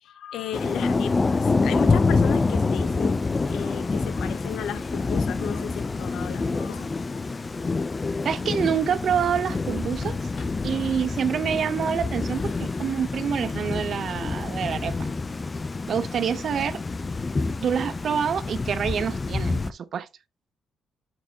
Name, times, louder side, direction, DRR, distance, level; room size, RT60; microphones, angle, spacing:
voice 1, 0.0-7.3 9.7-10.0, left 9 dB, 75° left, 0.7 m, -35 dB
Thunder / Rain, 0.5-19.7, left 3 dB, 25° left, 0.4 m, -27 dB
voice 2, 8.2-10.2 10.6-14.9 15.9-16.8 17.6-20.1, right 7 dB, 55° right, 0.7 m, -27 dB
sound 1, 9.4-13.0, left 5 dB, 55° left, 1.7 m, -50 dB
7.4 x 5.3 x 2.8 m
cardioid pair, 90°, 0 cm